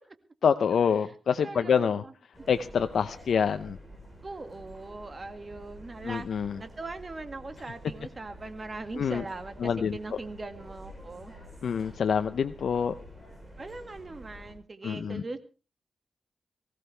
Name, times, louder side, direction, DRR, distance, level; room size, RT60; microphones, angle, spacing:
voice 1, 0.4-2.0 2.5-3.8 6.0-6.6 8.9-9.2 9.6-10.0 11.6-12.9 14.8-15.2, left 7 dB, 80° left, 9 dB, 0.7 m, -26 dB
voice 2, 1.4-2.1 4.2-11.3 13.6-15.4, right 3 dB, 35° right, 8 dB, 1.9 m, -40 dB
sound 1, 2.3-14.5, equal, 10° right, 7.0 m, -49 dB
19.5 x 16.0 x 3.4 m, 0.34 s
wide cardioid pair, 95°, 0 cm